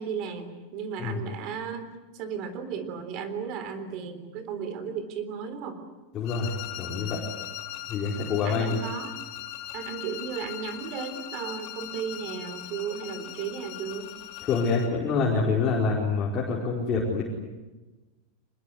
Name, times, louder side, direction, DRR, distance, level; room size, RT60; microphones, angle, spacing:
voice 1, 0.0-1.9 2.1-5.8 8.4-9.2 9.7-14.1, right 6 dB, 40° right, 10 dB, 3.7 m, -35 dB
voice 2, 6.1-7.2 7.9-8.8 14.4-17.2, left 4 dB, 25° left, -3 dB, 4.7 m, -26 dB
sound 1, 6.2-15.0, left 13 dB, 45° left, 2.5 m, -40 dB
26.5 x 20.5 x 9.6 m, 1.1 s
supercardioid pair, 155°, 0 cm